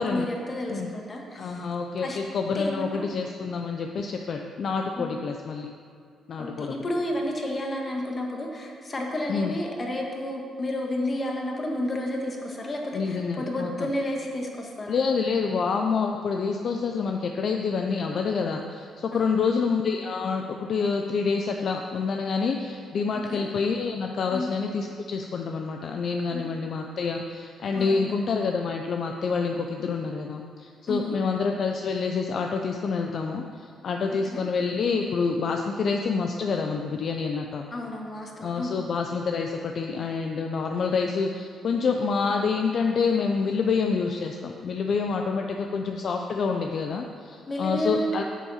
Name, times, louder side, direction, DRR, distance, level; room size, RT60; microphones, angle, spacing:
voice 1, 0.0-1.6 2.0-2.2 2.5-3.1 5.0-5.1 6.4-15.0 19.1-19.6 23.3-23.4 24.3-24.5 26.3-26.5 27.7-28.2 30.9-31.3 34.1-34.4 37.7-38.8 47.4-48.2, left 1 dB, 30° left, 0 dB, 1.6 m, -31 dB
voice 2, 1.3-5.7 6.3-6.8 9.3-9.5 12.9-13.9 14.9-37.7 38.4-48.2, left 5 dB, 55° left, 3 dB, 0.5 m, -27 dB
8.4 x 7.1 x 5.7 m, 2.2 s
cardioid pair, 100°, 0 cm